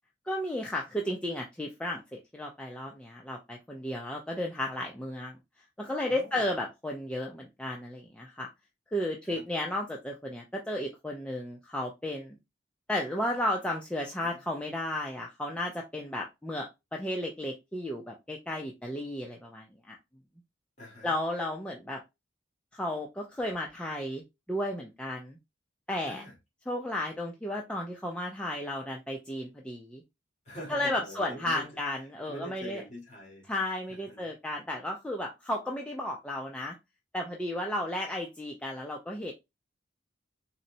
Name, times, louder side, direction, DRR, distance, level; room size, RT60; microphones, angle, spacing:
voice 1, 0.3-5.4 5.8-8.5 8.9-12.4 12.9-20.0 21.0-22.0 22.7-24.2 24.5-25.4 25.9-26.2 26.7-30.0 30.7-32.8 33.5-36.8 37.1-39.3, left 1 dB, 5° left, 0.3 m, -33 dB
voice 2, 6.1-6.5 9.2-9.4 14.2-14.4 20.8-21.1 26.1-26.3 30.4-31.7 32.3-33.5 33.9-34.3, equal, 40° left, 1.6 m, -44 dB
4.0 x 2.0 x 2.6 m
head